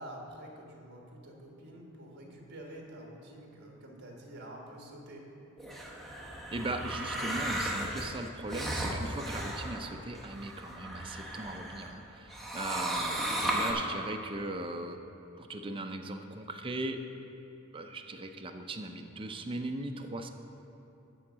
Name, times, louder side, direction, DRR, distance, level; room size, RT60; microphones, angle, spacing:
voice 1, 0.0-5.2 12.6-13.3, right 1 dB, 50° right, 0 dB, 1.4 m, -48 dB
sound 1, 5.6-11.9 12.3-13.7, right 1 dB, ahead, 0.9 m, -35 dB
voice 2, 6.5-15.0 15.4-17.0 17.7-20.3, right 2 dB, 25° right, 5 dB, 0.5 m, -38 dB
10.5 x 3.8 x 7.2 m, 2.9 s
head